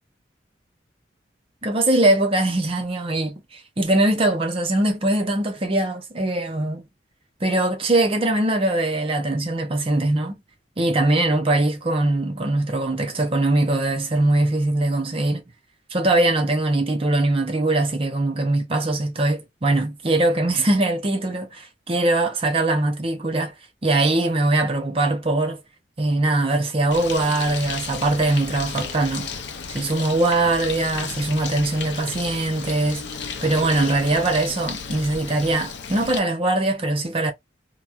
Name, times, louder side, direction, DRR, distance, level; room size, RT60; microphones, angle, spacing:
voice 1, 1.6-6.8 7.4-10.4 10.8-15.4 15.9-23.5 23.8-25.6 26.0-29.3 29.7-37.3, right 2 dB, 35° right, 0.6 m, -22 dB
Bird, 26.9-36.2, left 6 dB, 85° left, 0.5 m, -33 dB
3.0 x 2.1 x 2.3 m
head